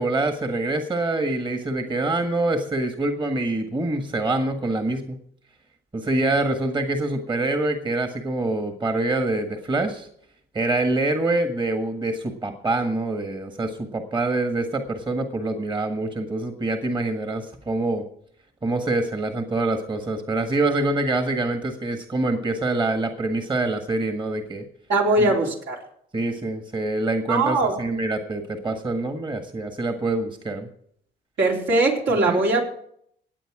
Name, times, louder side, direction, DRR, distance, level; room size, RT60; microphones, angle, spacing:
voice 1, 0.0-5.2 5.9-10.1 10.5-18.0 18.6-24.6 26.1-30.7 32.3-32.4, right 2 dB, 25° right, 5 dB, 1.6 m, -25 dB
voice 2, 24.9-25.8 27.3-27.8 31.4-32.6, right 2 dB, 70° right, -1 dB, 3.8 m, -20 dB
18.5 x 8.3 x 4.9 m, 0.67 s
cardioid pair, 90°, 20 cm